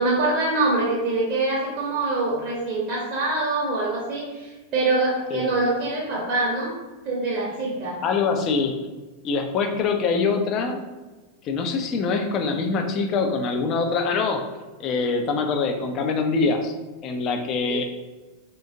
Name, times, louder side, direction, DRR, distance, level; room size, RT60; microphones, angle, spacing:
voice 1, 0.0-6.7 7.0-8.0 17.7-17.8, right 2 dB, 35° right, -5 dB, 0.8 m, -24 dB
voice 2, 8.0-8.8 9.2-10.8 11.4-14.5 14.8-16.8 17.0-17.9, left 4 dB, 35° left, 5 dB, 0.5 m, -24 dB
3.7 x 3.4 x 2.6 m, 1.2 s
figure-of-eight pair, 90°, 0 cm